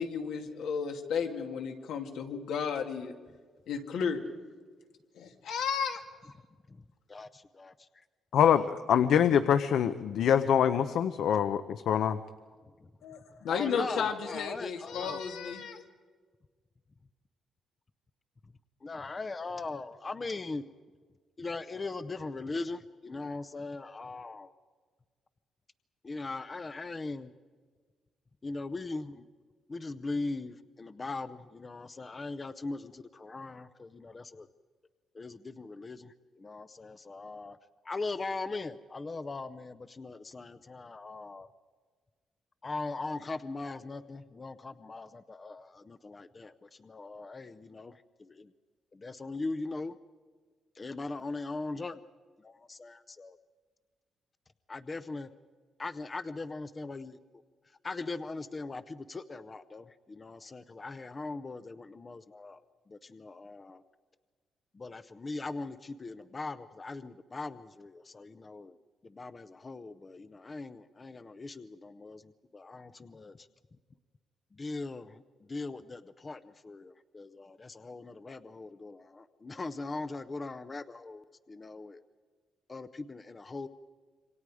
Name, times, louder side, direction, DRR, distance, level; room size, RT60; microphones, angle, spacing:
voice 1, 0.0-3.1 3.7-4.2 5.2-6.0 13.0-15.8, left 6 dB, 85° left, 4 dB, 2.3 m, -33 dB
voice 2, 7.1-8.0 8.5-8.7 11.3-11.4 12.8-12.9 13.5-15.2 18.8-20.6 21.4-24.5 26.0-27.3 28.4-29.3 29.7-34.5 35.1-37.6 37.8-41.5 42.6-48.5 48.9-50.0 50.8-52.0 52.4-53.4 54.7-55.3 55.8-57.2 57.8-62.6 62.9-63.8 64.7-68.8 69.0-73.5 74.5-75.2 75.5-82.0 82.7-83.7, left 3 dB, 20° left, 13 dB, 0.6 m, -40 dB
voice 3, 8.3-12.2, left 8 dB, 65° left, 11 dB, 0.7 m, -25 dB
27.0 x 25.0 x 4.9 m, 1.5 s
cardioid pair, 165°, 0 cm